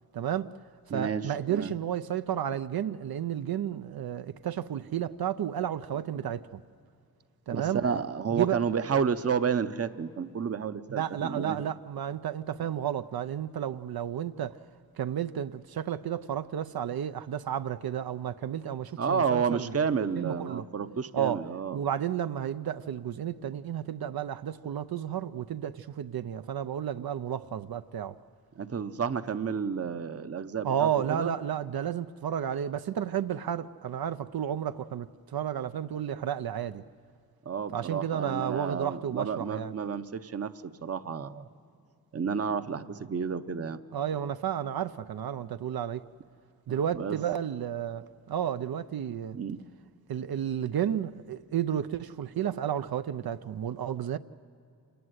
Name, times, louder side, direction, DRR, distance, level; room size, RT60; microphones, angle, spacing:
voice 1, 0.1-0.5 0.9-6.6 7.5-7.8 8.3-8.6 10.9-14.6 15.0-19.7 20.2-20.6 21.1-21.4 21.7-28.2 30.6-36.8 37.7-39.7 43.9-46.0 46.7-49.4 50.1-54.2, right 9 dB, 80° right, 0.6 m, -32 dB
voice 2, 0.9-1.7 7.5-11.6 19.0-21.8 28.6-31.3 37.5-41.5 42.1-43.8 46.7-47.2 49.3-49.6, right 6 dB, 40° right, 0.7 m, -31 dB
27.5 x 19.0 x 8.0 m
wide cardioid pair, 140°, 36 cm